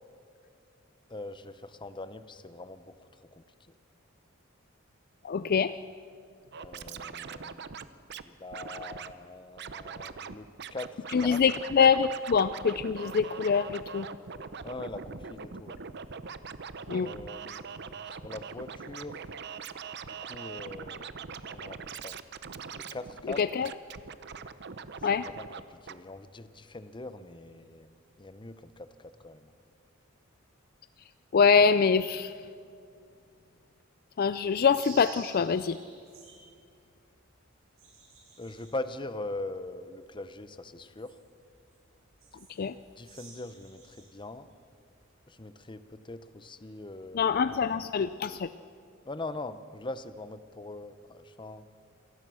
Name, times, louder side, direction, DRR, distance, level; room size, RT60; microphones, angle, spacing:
voice 1, 1.1-3.4 6.6-7.6 8.3-11.4 14.6-15.8 17.0-19.2 20.0-22.2 22.7-23.4 25.0-27.9 28.2-29.6 38.4-41.2 43.0-44.5 45.3-47.6 49.0-51.6, left 2 dB, 25° left, 12 dB, 0.8 m, -42 dB
voice 2, 5.2-5.7 11.1-14.1 16.9-17.1 23.4-23.7 25.0-25.3 31.3-32.3 34.2-35.8 42.6-42.7 47.1-48.5, left 6 dB, 45° left, 13 dB, 0.4 m, -24 dB
Scratching (performance technique), 6.5-8.2 8.5-9.1 9.6-10.3 10.6-25.6 25.9-26.0, right 6 dB, 55° right, 0.8 m, -42 dB
sound 1, 34.7-36.5 36.9-44.1 44.5-45.1, right 4 dB, 85° right, 7.6 m, -52 dB
27.0 x 18.0 x 6.3 m, 2.3 s
head